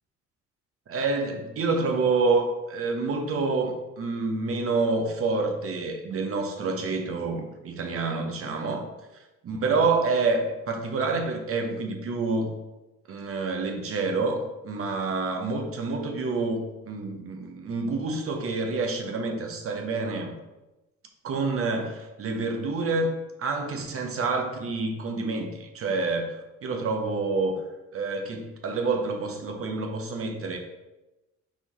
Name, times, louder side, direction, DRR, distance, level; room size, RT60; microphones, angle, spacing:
voice 1, 0.9-8.9 9.4-12.5 13.1-20.3 21.2-26.4 26.6-27.6 27.9-30.6, right 3 dB, 50° right, 4 dB, 0.8 m, -28 dB
4.2 x 3.6 x 3.0 m, 1.0 s
cardioid pair, 90°, 30 cm